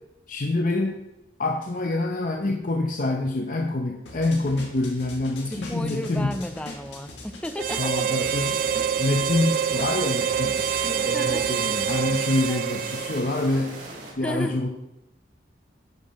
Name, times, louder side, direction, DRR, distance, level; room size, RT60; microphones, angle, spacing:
voice 1, 0.3-1.0 1.4-6.3 7.8-8.6 9.0-13.8 14.2-14.7, left 2 dB, 45° left, 2 dB, 0.7 m, -26 dB
sound 1, 4.1-12.4, left 2 dB, 80° left, 1.9 m, -41 dB
voice 2, 5.5-8.0 11.1-11.5 12.5-12.7 14.2-14.6, equal, 5° left, 8 dB, 0.5 m, -33 dB
Harmonica, 7.6-13.5, right 8 dB, 50° right, 0.3 m, -26 dB
sound 2, 8.0-14.1, right 2 dB, 65° right, 3.1 m, -40 dB
11.0 x 5.8 x 4.3 m, 0.93 s
head